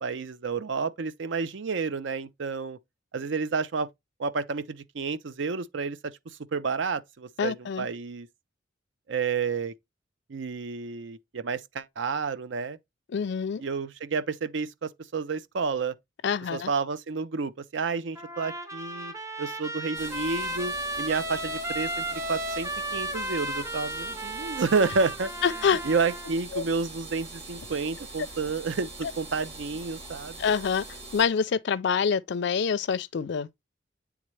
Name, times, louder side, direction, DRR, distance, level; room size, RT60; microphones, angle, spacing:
voice 1, 0.0-2.8 3.1-3.9 4.2-8.3 9.1-9.7 10.3-12.8 13.6-15.9 16.5-19.1 19.4-25.3 25.8-30.4, right 4 dB, 70° right, 0.5 m, -30 dB
voice 2, 7.4-7.9 13.1-13.6 16.2-16.7 25.4-25.8 26.5-26.6 30.4-30.8 31.1-33.5, left 6 dB, 60° left, 0.4 m, -26 dB
Trumpet, 18.2-26.3, right 1 dB, 15° right, 0.9 m, -34 dB
sound 1, 19.9-31.3, right 2 dB, 35° right, 3.1 m, -43 dB
8.6 x 3.6 x 3.1 m
head